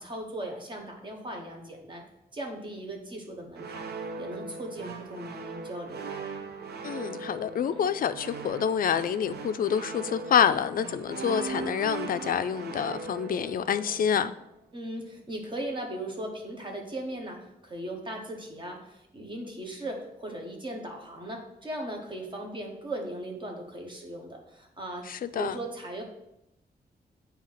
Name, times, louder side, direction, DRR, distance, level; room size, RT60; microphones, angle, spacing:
voice 1, 0.0-2.1 2.3-3.9 4.2-6.2 14.7-25.1 25.4-26.0, right 1 dB, 30° right, 1.1 m, -38 dB
sound 1, 3.5-14.5, right 4 dB, 80° right, 0.7 m, -39 dB
voice 2, 6.8-14.3 25.1-25.6, left 8 dB, 60° left, 0.4 m, -27 dB
8.3 x 2.8 x 5.7 m
wide cardioid pair, 165°, 17 cm